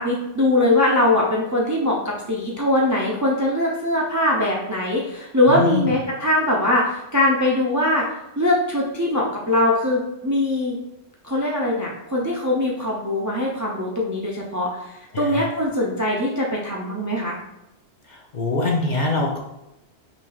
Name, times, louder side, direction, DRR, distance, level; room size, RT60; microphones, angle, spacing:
voice 1, 0.0-8.0 8.4-10.8 11.2-17.4, left 1 dB, 25° right, -3 dB, 0.4 m, -21 dB
voice 2, 5.5-5.9 15.1-15.5 18.1-19.4, left 2 dB, 50° left, -1 dB, 0.7 m, -24 dB
5.8 x 3.2 x 2.3 m, 0.91 s
omnidirectional pair, 1.2 m